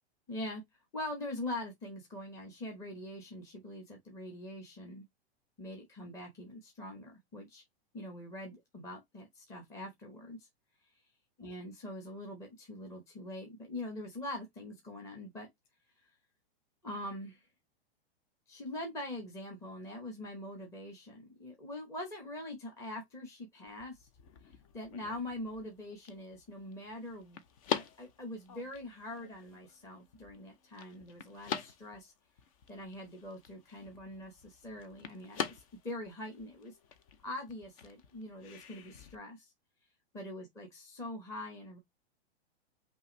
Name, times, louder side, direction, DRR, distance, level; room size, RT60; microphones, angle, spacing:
voice 1, 0.3-0.6 0.9-5.0 5.6-7.6 7.9-10.5 11.4-15.5 16.8-17.5 18.5-24.1 24.5-27.4 27.7-32.1 32.7-36.8 37.2-39.5 40.1-41.8, left 1 dB, 10° left, 0.9 m, -43 dB
sound 1, 23.7-39.2, left 7 dB, 35° left, 0.6 m, -45 dB
5.5 x 2.7 x 3.1 m
supercardioid pair, 165°, 32 cm